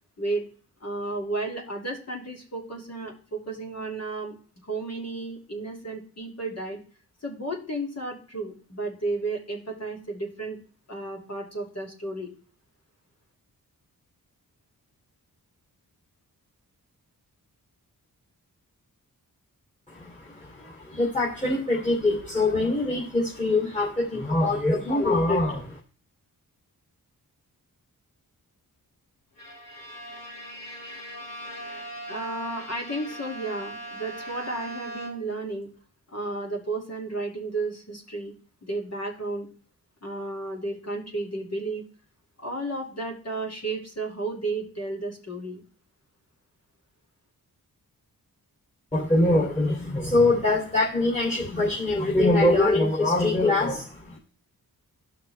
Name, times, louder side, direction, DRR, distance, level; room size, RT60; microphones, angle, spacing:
voice 1, 0.2-0.5 0.8-4.4 4.7-6.8 7.2-10.6 10.9-12.3 32.1-35.7 36.1-38.3 38.6-39.5 40.0-41.8 42.4-45.6, right 2 dB, 45° left, 1 dB, 2.6 m, -33 dB
voice 2, 19.9-25.8 48.9-54.2, left 2 dB, 20° left, -5 dB, 2.8 m, -23 dB
Bowed string instrument, 29.4-35.5, right 1 dB, 65° left, 2.6 m, -40 dB
13.5 x 5.8 x 3.4 m, 0.41 s
wide cardioid pair, 80°, 37 cm